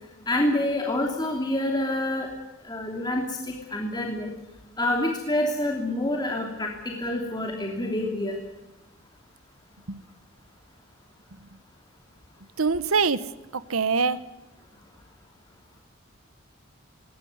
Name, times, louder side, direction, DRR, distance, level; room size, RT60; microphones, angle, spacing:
voice 1, 0.3-2.3 2.7-4.3 4.8-8.4, left 1 dB, 20° left, 1 dB, 2.9 m, -27 dB
voice 2, 12.6-13.3 13.5-14.2, right 5 dB, 90° right, 16 dB, 1.0 m, -24 dB
20.5 x 18.5 x 9.5 m, 0.99 s
head